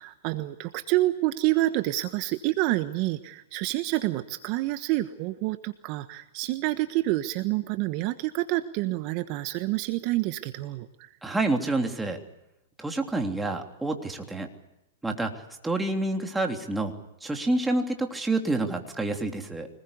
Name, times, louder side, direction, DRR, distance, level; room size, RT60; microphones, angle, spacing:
voice 1, 0.0-11.1, right 17 dB, 45° right, 10 dB, 1.3 m, -28 dB
voice 2, 11.2-12.2 12.8-14.5 15.0-16.9 17.2-19.7, right 2 dB, 5° right, 3 dB, 3.2 m, -28 dB
25.5 x 20.5 x 8.3 m, 0.90 s
hypercardioid pair, 115°, 0 cm